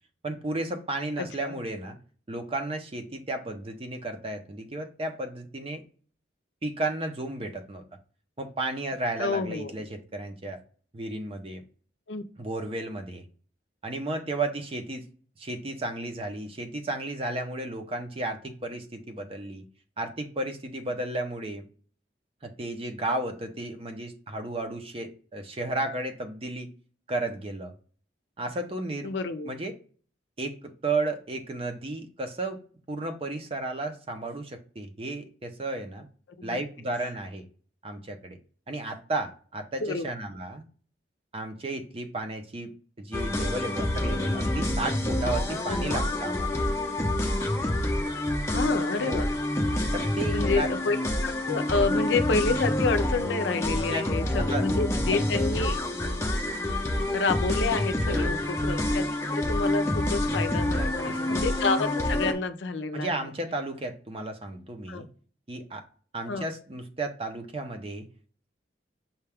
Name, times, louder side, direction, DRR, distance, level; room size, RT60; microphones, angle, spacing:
voice 1, 0.2-2.0 2.3-5.8 6.6-7.8 8.4-10.6 10.9-11.6 12.4-13.2 13.8-15.1 15.4-19.6 20.0-21.6 22.4-26.7 27.1-27.7 28.4-29.1 29.4-29.7 30.4-32.6 32.9-36.1 36.4-37.5 37.8-38.4 38.7-40.6 41.3-46.6 49.0-49.3 49.9-50.7 53.9-54.0 54.4-54.6 55.1-55.3 58.1-58.4 60.7-61.4 62.9-65.1 65.5-65.8 66.1-68.1, right 2 dB, 30° right, 6 dB, 0.6 m, -33 dB
voice 2, 1.2-1.6 9.2-9.7 12.1-12.2 29.0-29.5 36.4-36.6 39.8-40.1 45.7-46.0 48.5-49.3 50.3-51.0 51.2-55.8 57.1-59.0 59.3-63.1 64.9-65.0 66.3-66.4, left 4 dB, 80° left, 8 dB, 0.5 m, -29 dB
sound 1, 43.1-62.3, left 1 dB, 15° left, 0.6 m, -27 dB
5.6 x 2.3 x 3.4 m, 0.42 s
head